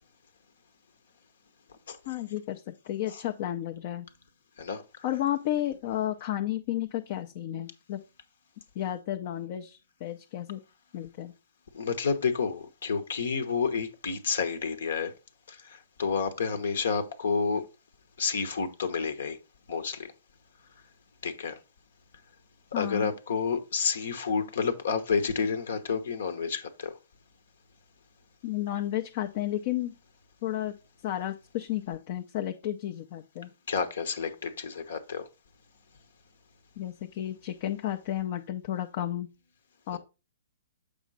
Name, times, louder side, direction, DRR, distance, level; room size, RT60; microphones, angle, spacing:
voice 1, 2.1-4.1 5.0-8.0 8.8-10.6 10.9-11.3 22.7-23.1 28.4-29.9 30.4-30.7 31.0-33.5 36.8-39.3 39.9-40.0, left 12 dB, 45° left, 0.6 m, -32 dB
voice 2, 11.7-15.1 15.5-15.6 16.0-17.6 18.2-19.4 19.7-20.1 21.2-21.6 22.7-26.9 33.7-35.2 39.9-40.0, left 5 dB, 70° left, 1.0 m, -29 dB
7.1 x 5.0 x 4.0 m
hypercardioid pair, 125°, 0 cm